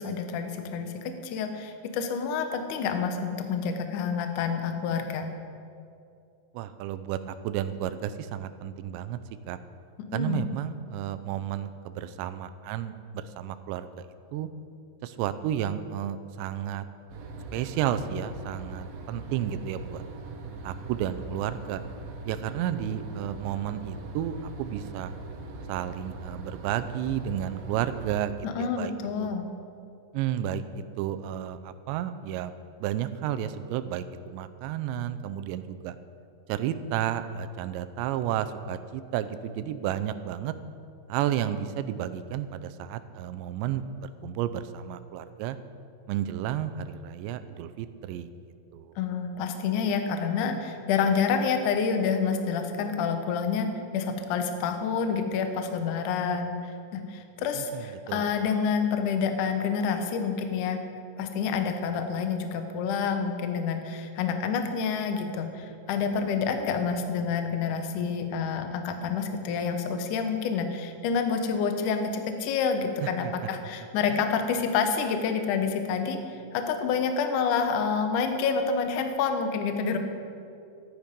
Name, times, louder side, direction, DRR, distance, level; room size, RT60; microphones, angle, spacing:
voice 1, 0.0-5.3 10.1-10.4 28.4-29.5 49.0-53.7 53.9-60.8 61.2-80.0, left 6 dB, 85° left, 6 dB, 1.8 m, -28 dB
voice 2, 6.5-9.2 9.5-9.6 10.1-13.9 14.3-14.5 15.0-16.8 17.5-20.0 20.6-21.8 22.3-25.1 25.7-28.9 29.2-29.3 30.1-32.5 32.8-36.0 36.5-40.5 41.1-45.6 46.1-48.3 48.7-48.9 57.6-58.3 74.1-74.2, right 10 dB, 85° right, 12 dB, 2.8 m, -32 dB
sound 1, 17.1-28.2, right 3 dB, 65° right, 2.4 m, -41 dB
14.0 x 11.5 x 5.2 m, 2.5 s
omnidirectional pair, 5.2 m